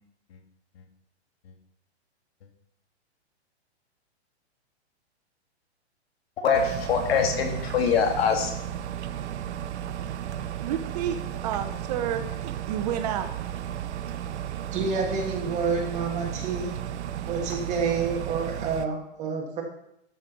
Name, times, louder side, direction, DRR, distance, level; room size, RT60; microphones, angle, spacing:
voice 1, 6.4-8.6, left 6 dB, 65° left, 4 dB, 2.3 m, -23 dB
sound 1, 6.5-18.9, right 10 dB, 80° right, 0.8 m, -34 dB
voice 2, 10.6-11.2 11.4-13.3, right 9 dB, 35° right, 7 dB, 0.7 m, -30 dB
voice 3, 14.7-16.7 17.3-19.6, right 5 dB, 20° right, 0 dB, 2.1 m, -28 dB
12.5 x 5.1 x 6.2 m, 0.77 s
hypercardioid pair, 155°, 33 cm